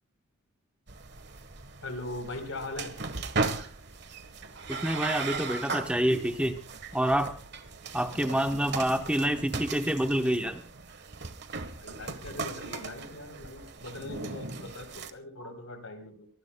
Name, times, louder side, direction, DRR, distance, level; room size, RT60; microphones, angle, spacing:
sound 1, 0.9-15.1, right 4 dB, 55° right, 1.4 m, -37 dB
voice 1, 1.8-2.9 11.6-16.3, left 2 dB, 90° left, 7 dB, 4.1 m, -40 dB
voice 2, 4.7-6.6 6.9-7.4 7.9-10.6 15.4-15.5, right 1 dB, 5° right, 6 dB, 1.0 m, -27 dB
24.5 x 19.5 x 2.3 m, 0.39 s
head